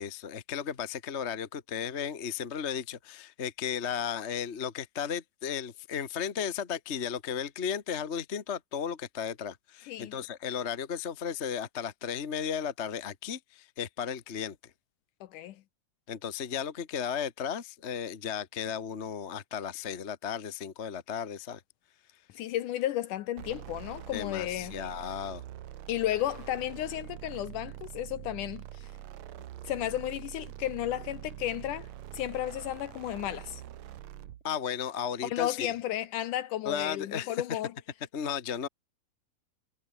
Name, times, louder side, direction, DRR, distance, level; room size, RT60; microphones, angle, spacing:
voice 1, 0.0-14.6 16.1-21.6 24.1-25.4 34.4-35.7 36.6-37.6 38.1-38.7, left 7 dB, 40° left, 0.9 m, -35 dB
voice 2, 15.2-15.6 22.3-24.8 25.9-28.9 29.7-31.9 32.1-33.6 35.2-37.7, left 13 dB, 75° left, 2.2 m, -33 dB
sound 1, 23.4-34.4, right 12 dB, 60° right, 2.0 m, -45 dB
omnidirectional pair, 4.1 m